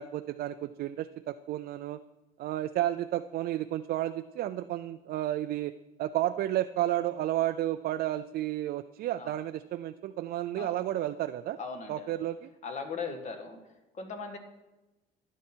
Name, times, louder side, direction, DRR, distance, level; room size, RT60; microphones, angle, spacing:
voice 1, 0.0-2.0 2.4-5.7 6.0-11.6 11.9-12.5, right 13 dB, 65° right, 9 dB, 0.4 m, -32 dB
voice 2, 11.6-12.1 12.6-13.6 13.9-14.4, left 5 dB, 45° left, 5 dB, 1.8 m, -38 dB
13.0 x 10.0 x 4.5 m, 1.1 s
cardioid pair, 110°, 17 cm